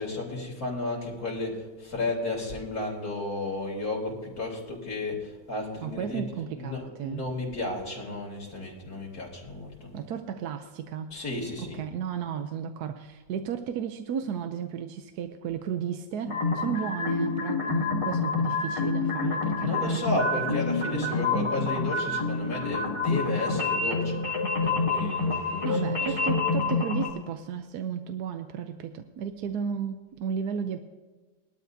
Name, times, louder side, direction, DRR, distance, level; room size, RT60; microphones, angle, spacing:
voice 1, 0.0-6.3 6.6-9.9 11.1-11.8 19.6-24.2 24.6-26.5, left 2 dB, 65° left, -2 dB, 3.7 m, -33 dB
voice 2, 5.8-7.2 9.9-11.2 11.6-20.6 20.8-21.2 25.6-30.8, right 7 dB, 75° right, 7 dB, 1.2 m, -34 dB
sound 1, 16.2-27.1, left 3 dB, 20° left, 2.8 m, -27 dB
20.5 x 12.5 x 2.7 m, 1.3 s
omnidirectional pair, 1.7 m